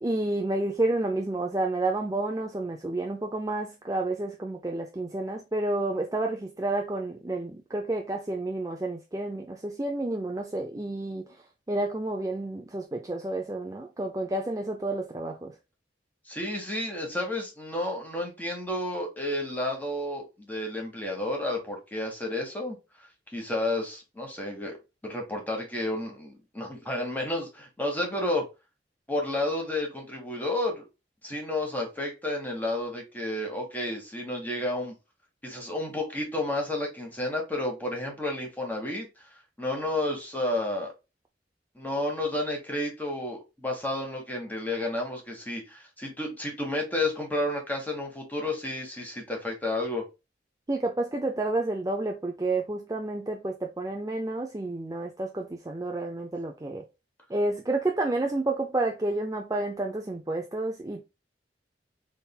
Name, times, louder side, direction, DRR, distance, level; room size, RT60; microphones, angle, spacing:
voice 1, 0.0-11.2 11.7-15.5 50.7-56.8 57.3-61.0, right 2 dB, 20° right, 0.5 m, -30 dB
voice 2, 16.3-22.8 23.3-24.8 25.0-28.4 29.1-30.8 31.2-34.9 35.4-39.1 39.6-40.9 41.7-50.0, left 1 dB, 10° left, 1.5 m, -31 dB
4.2 x 3.8 x 2.3 m
head